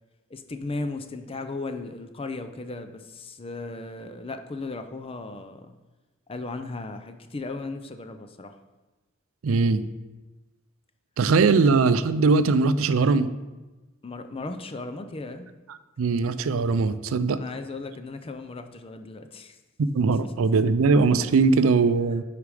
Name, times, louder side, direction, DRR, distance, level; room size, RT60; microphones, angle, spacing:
voice 1, 0.3-5.7 6.3-8.5 14.0-15.5 17.3-19.6 20.1-20.3, left 3 dB, 30° left, 8 dB, 0.5 m, -36 dB
voice 2, 9.4-9.9 11.2-13.3 16.0-17.4 19.8-22.2, right 4 dB, 85° right, 13 dB, 0.4 m, -21 dB
8.3 x 5.0 x 4.9 m, 1.1 s
head